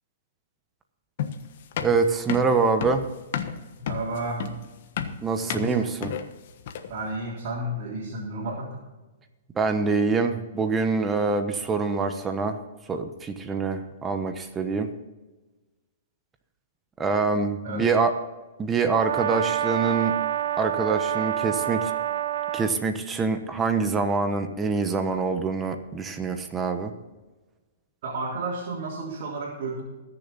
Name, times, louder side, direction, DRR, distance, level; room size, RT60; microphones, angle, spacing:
sound 1, 1.2-7.0, left 8 dB, 55° left, 1.3 m, -32 dB
voice 1, 1.8-3.0 5.2-6.1 9.6-12.6 12.9-14.9 17.0-18.1 18.6-20.1 20.6-21.9 22.5-26.9, right 4 dB, 15° right, 7 dB, 1.1 m, -25 dB
voice 2, 3.8-4.5 5.5-5.9 6.9-8.8 17.6-17.8 28.0-29.8, right 2 dB, 50° right, -5 dB, 3.5 m, -32 dB
Brass instrument, 18.9-22.8, right 11 dB, 70° right, 0.8 m, -27 dB
20.5 x 7.0 x 4.2 m, 1.2 s
hypercardioid pair, 145°, 0 cm